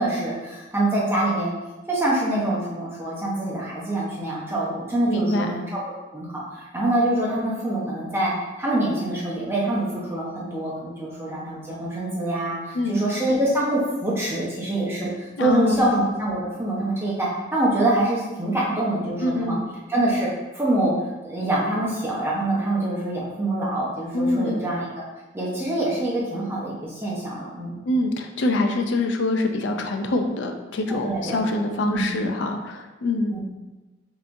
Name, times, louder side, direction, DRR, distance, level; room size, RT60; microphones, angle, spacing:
voice 1, 0.0-1.5 1.9-5.8 6.1-19.6 19.9-20.9 21.2-25.0 25.3-27.9 30.9-32.2 33.3-33.4, right 1 dB, 15° right, -5 dB, 0.9 m, -25 dB
voice 2, 5.1-5.5 12.7-13.0 15.4-15.9 19.2-19.6 24.1-24.6 27.9-33.4, left 2 dB, 80° left, 5 dB, 0.5 m, -24 dB
5.6 x 3.0 x 2.6 m, 1.2 s
head